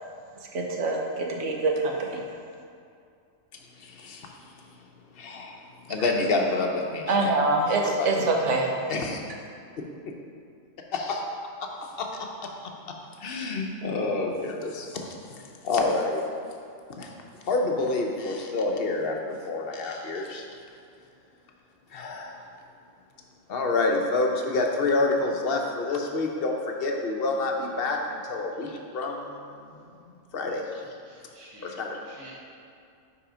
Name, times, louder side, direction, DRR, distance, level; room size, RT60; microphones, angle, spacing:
voice 1, 0.5-2.2 7.1-8.7, right 3 dB, 70° right, 1 dB, 1.1 m, -25 dB
voice 2, 3.8-4.3 5.1-5.6 5.9-7.3 7.8-8.1 8.9-9.2 10.9-11.2 12.0-12.1 13.2-15.1 15.6-16.2 17.0-17.1 17.5-20.4 21.9-22.4 23.5-29.5 29.8-29.9 30.3-30.6 31.6-32.0, left 3 dB, 55° left, 2 dB, 0.8 m, -28 dB
voice 3, 31.1-32.3, right 1 dB, 20° right, -6 dB, 1.2 m, -50 dB
5.7 x 4.8 x 5.0 m, 2.4 s
omnidirectional pair, 1.3 m